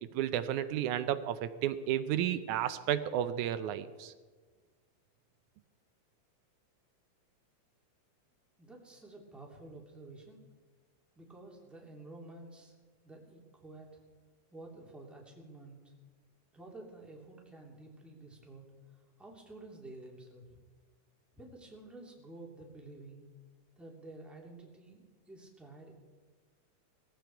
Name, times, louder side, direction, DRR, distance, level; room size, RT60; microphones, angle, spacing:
voice 1, 0.1-4.1, right 11 dB, 85° right, 12 dB, 2.1 m, -32 dB
voice 2, 8.6-10.4 11.2-12.7 13.0-13.9 14.5-15.9 16.5-18.6 18.9-20.6 21.3-23.2 23.8-25.9, right 2 dB, ahead, -1 dB, 2.4 m, -51 dB
20.5 x 15.0 x 4.6 m, 1.4 s
omnidirectional pair, 3.4 m